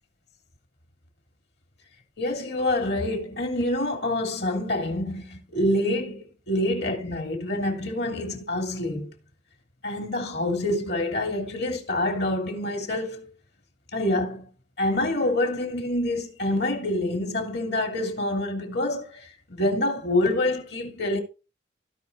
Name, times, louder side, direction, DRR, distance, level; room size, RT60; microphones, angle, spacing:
voice 1, 2.2-9.1 9.8-13.3 13.9-14.4 14.8-21.2, left 1 dB, 60° left, 2.9 m, -26 dB
16.5 x 5.7 x 2.6 m
head